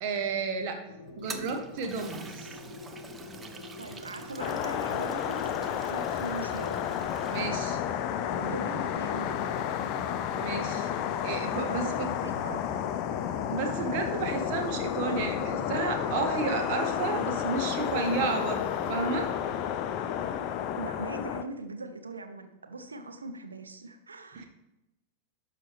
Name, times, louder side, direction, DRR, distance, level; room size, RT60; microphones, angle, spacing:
voice 1, 0.0-0.8 1.2-2.6 7.3-7.8 10.3-10.9 11.2-12.1 13.5-18.6 18.9-19.3 24.3-24.5, right 4 dB, 45° right, 4 dB, 1.3 m, -32 dB
sound 1, 0.9-17.2, left 3 dB, 70° left, 0.8 m, -46 dB
Toilet flush, 1.1-7.5, right 4 dB, 15° right, 0.7 m, -46 dB
voice 2, 3.8-6.8 8.4-9.5 11.5-12.9 20.7-24.5, right 2 dB, 75° right, 7 dB, 0.8 m, -40 dB
sound 2, 4.4-21.4, left 9 dB, 40° left, 0.5 m, -31 dB
12.0 x 4.8 x 3.5 m, 0.91 s
figure-of-eight pair, 90°, 0 cm